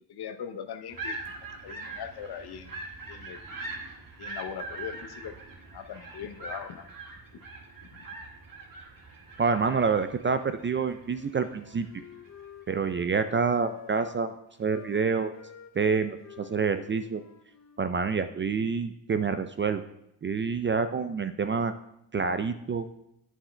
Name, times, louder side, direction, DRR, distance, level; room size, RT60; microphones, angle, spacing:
voice 1, 0.1-1.2 1.6-2.8 3.1-3.4 4.2-5.3 5.7-6.9 7.9-8.1, left 8 dB, 50° left, 9 dB, 0.7 m, -40 dB
sound 1, 0.9-12.5, right 2 dB, 40° right, 1.7 m, -42 dB
voice 2, 9.4-12.0 12.7-15.3 15.8-17.2 17.8-19.8 20.2-21.7 22.1-22.9, right 5 dB, 25° right, 11 dB, 0.4 m, -27 dB
Wind instrument woodwind instrument, 11.1-14.2 14.7-17.8, left 7 dB, 35° left, 1.0 m, -48 dB
9.2 x 7.3 x 2.2 m, 0.81 s
hypercardioid pair, 45°, 48 cm